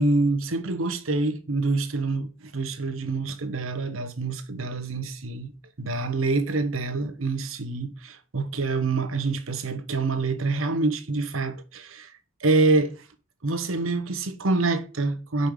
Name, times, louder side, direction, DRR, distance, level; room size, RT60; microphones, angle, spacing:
voice 1, 0.0-5.5 5.8-12.1 12.4-12.9 13.4-15.5, right 3 dB, 90° right, 1.1 m, -26 dB
5.4 x 5.1 x 6.4 m
head